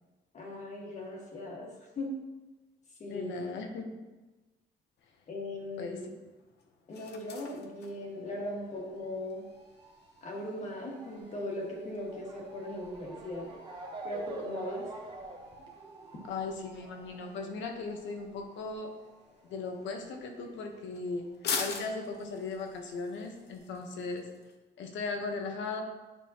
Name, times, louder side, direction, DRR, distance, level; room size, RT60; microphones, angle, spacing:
voice 1, 0.3-2.2 3.0-3.3 5.3-6.0 6.9-9.4 10.2-13.5 14.0-14.8, left 1 dB, 40° left, -1 dB, 1.6 m, -38 dB
voice 2, 3.1-3.9 5.8-6.2 16.3-18.9 19.5-21.3 21.6-24.3 24.8-25.8, left 4 dB, 80° left, 4 dB, 1.1 m, -37 dB
sound 1, 5.0-24.6, left 5 dB, 65° left, 0.8 m, -46 dB
Motor vehicle (road) / Siren, 8.3-21.3 21.5-22.7 23.4-23.5 23.7-23.8, right 2 dB, 25° right, 0.9 m, -48 dB
9.1 x 5.5 x 2.9 m, 1.2 s
cardioid pair, 150°, 19 cm